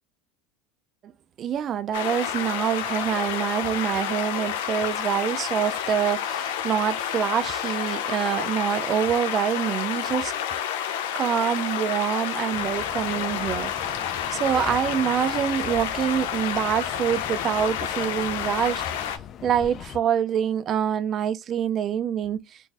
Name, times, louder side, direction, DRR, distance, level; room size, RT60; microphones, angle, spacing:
voice 1, 1.4-10.3 11.1-13.7 14.3-18.8 19.4-22.4, right 9 dB, 35° right, 0.4 m, -26 dB
sound 1, 1.9-19.2, left 9 dB, 85° left, 0.6 m, -29 dB
sound 2, 12.5-20.0, left 8 dB, 40° left, 0.4 m, -41 dB
3.8 x 2.5 x 2.4 m
supercardioid pair, 130°, 0 cm